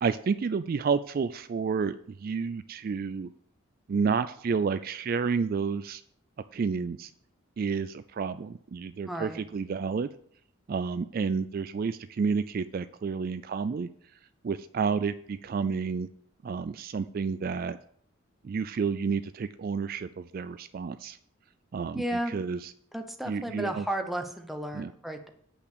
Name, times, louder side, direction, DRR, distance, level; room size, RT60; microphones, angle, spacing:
voice 1, 0.0-3.3 3.9-6.0 6.5-7.1 7.6-10.1 10.7-13.9 14.4-16.1 16.4-17.8 18.4-21.2 21.7-22.0 22.3-22.6 23.3-23.8 24.7-24.9, right 5 dB, 45° right, 12 dB, 0.3 m, -30 dB
voice 2, 9.0-9.4 21.9-22.4 22.9-25.3, right 1 dB, ahead, 4 dB, 0.8 m, -33 dB
8.2 x 5.7 x 6.8 m, 0.64 s
head